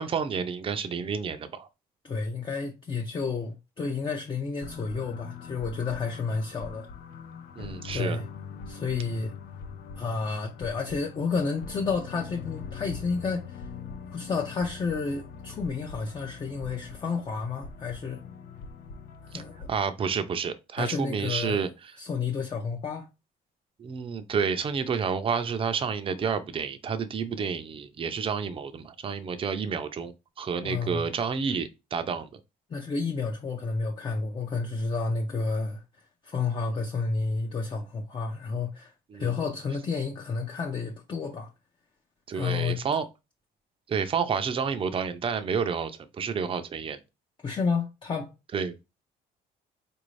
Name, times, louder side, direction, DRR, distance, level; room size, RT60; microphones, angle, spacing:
voice 1, 0.0-1.7 7.6-8.2 19.3-19.4 19.7-21.9 23.8-32.4 39.1-39.3 42.3-43.1 43.9-47.0 48.5-48.8, right 6 dB, 30° right, 0.5 m, -30 dB
voice 2, 2.0-6.9 7.9-8.2 8.7-9.3 10.0-13.7 14.1-18.2 19.2-19.7 20.8-21.6 22.0-23.1 30.6-31.0 32.7-35.8 36.2-41.5 42.3-42.8 47.4-48.3, left 4 dB, 30° left, 0.6 m, -31 dB
sound 1, 4.6-19.8, left 6 dB, 70° left, 0.6 m, -42 dB
4.0 x 2.6 x 3.1 m
cardioid pair, 110°, 17 cm